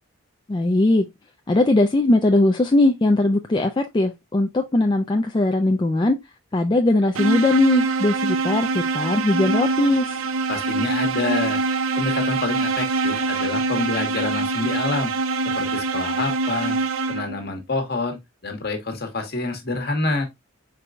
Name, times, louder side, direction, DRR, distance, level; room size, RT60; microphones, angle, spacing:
voice 1, 0.5-1.1 1.5-6.2 6.5-10.1, left 2 dB, 20° left, 0.4 m, -19 dB
sound 1, 7.1-17.5, right 3 dB, 85° right, 0.7 m, -24 dB
voice 2, 10.5-11.6 12.0-15.1 15.5-16.8 17.1-20.3, left 3 dB, 50° left, 1.3 m, -27 dB
4.6 x 4.5 x 2.4 m
head